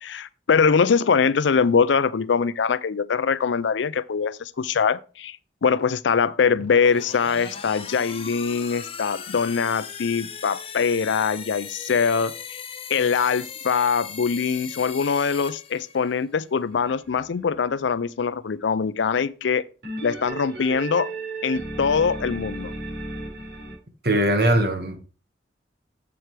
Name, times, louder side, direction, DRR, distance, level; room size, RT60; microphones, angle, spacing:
voice 1, 0.0-5.4 5.6-12.6 12.9-19.6 20.0-21.1 21.4-22.7, left 6 dB, 85° left, 0.5 m, -23 dB
sound 1, 6.5-16.3, left 6 dB, 30° left, 0.9 m, -38 dB
sound 2, 16.7-18.0 19.8-23.8, right 2 dB, 75° right, 5.2 m, -34 dB
voice 2, 24.0-25.0, right 1 dB, 55° right, 1.6 m, -20 dB
7.9 x 7.7 x 3.3 m
head